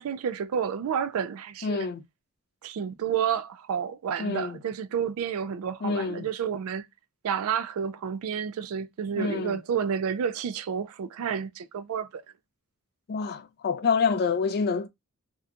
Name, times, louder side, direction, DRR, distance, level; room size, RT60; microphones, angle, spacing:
voice 1, 0.0-1.9 2.6-6.9 7.2-12.2, right 7 dB, 65° right, 0.3 m, -30 dB
voice 2, 1.6-2.0 4.2-4.6 5.8-6.3 9.2-9.6 13.1-14.9, left 5 dB, 45° left, 0.4 m, -27 dB
2.8 x 2.2 x 2.4 m
head